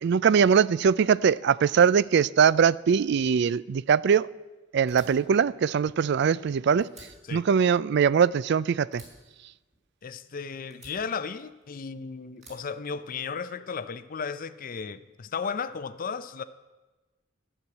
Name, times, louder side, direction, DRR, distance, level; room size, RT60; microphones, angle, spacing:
voice 1, 0.0-4.3 4.7-6.9 7.3-9.0, right 7 dB, 60° right, 0.3 m, -22 dB
Fire, 4.9-6.5 6.8-8.5 8.9-10.3 10.7-11.9 12.4-13.5, right 2 dB, 40° right, 4.1 m, -53 dB
voice 2, 10.0-16.4, left 5 dB, 45° left, 0.5 m, -35 dB
12.0 x 6.3 x 9.5 m
head